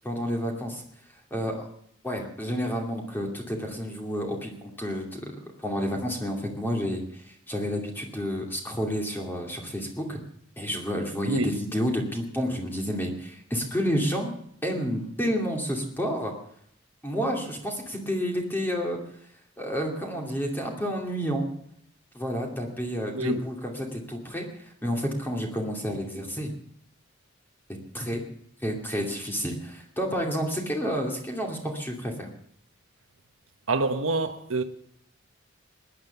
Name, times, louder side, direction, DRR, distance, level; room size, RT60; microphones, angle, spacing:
voice 1, 0.0-0.8 1.3-1.7 2.0-10.2 10.6-16.3 17.0-19.0 19.6-21.5 22.1-26.5 27.9-28.2 28.6-32.3, equal, 10° left, 2.6 m, -30 dB
voice 2, 33.7-34.6, right 3 dB, 85° right, 1.2 m, -26 dB
20.0 x 10.0 x 7.1 m
head